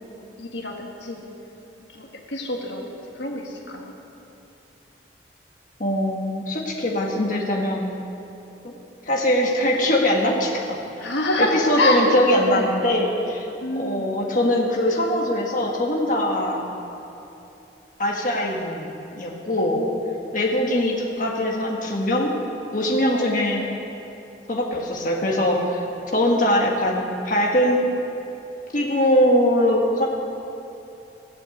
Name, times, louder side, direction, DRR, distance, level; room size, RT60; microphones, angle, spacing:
voice 1, 0.1-1.3 1.8-3.9 11.0-12.2 12.5-12.9 13.6-14.1 19.6-20.4 23.1-23.7, left 1 dB, 85° left, 1 dB, 1.6 m, -27 dB
voice 2, 5.8-7.9 8.6-8.7 9.1-10.8 11.7-13.5 13.8-16.7 18.0-18.9 19.1-19.8 20.3-22.3 22.7-23.6 24.5-25.9 26.1-27.9 28.7-30.1, left 1 dB, 45° left, -1 dB, 1.5 m, -22 dB
15.0 x 7.8 x 8.0 m, 2.9 s
head